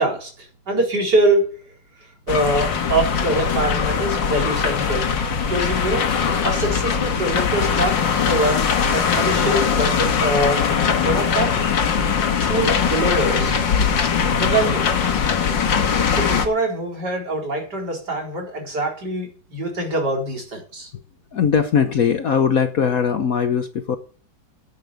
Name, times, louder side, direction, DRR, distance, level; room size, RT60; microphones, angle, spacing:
voice 1, 0.0-1.5 2.3-6.1 6.4-8.0 8.3-8.7 8.9-10.6 11.0-11.5 12.4-13.6 14.4-14.9 16.1-20.9, right 1 dB, 55° right, 0 dB, 4.9 m, -23 dB
sound 1, 2.3-16.5, left 6 dB, 70° left, 2.1 m, -21 dB
voice 2, 21.3-24.0, left 7 dB, 55° left, 9 dB, 1.2 m, -20 dB
10.5 x 7.9 x 9.2 m, 0.41 s
omnidirectional pair, 2.1 m